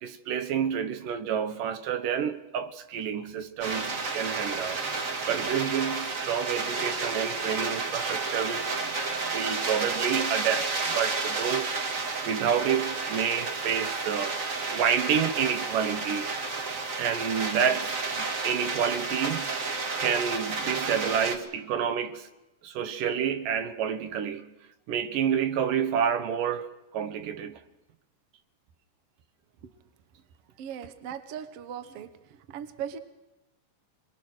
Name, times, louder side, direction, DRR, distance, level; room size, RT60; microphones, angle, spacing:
voice 1, 0.0-4.9 5.3-8.7 9.3-11.8 12.2-14.4 14.7-16.3 17.0-19.5 20.0-22.3 22.6-24.5 24.9-27.6, right 8 dB, 75° right, 2.6 m, -29 dB
sound 1, 3.6-21.4, right 3 dB, 35° right, 1.3 m, -31 dB
voice 2, 30.6-32.1 32.5-33.0, right 9 dB, 60° right, 1.8 m, -38 dB
26.5 x 22.0 x 6.3 m
omnidirectional pair, 4.0 m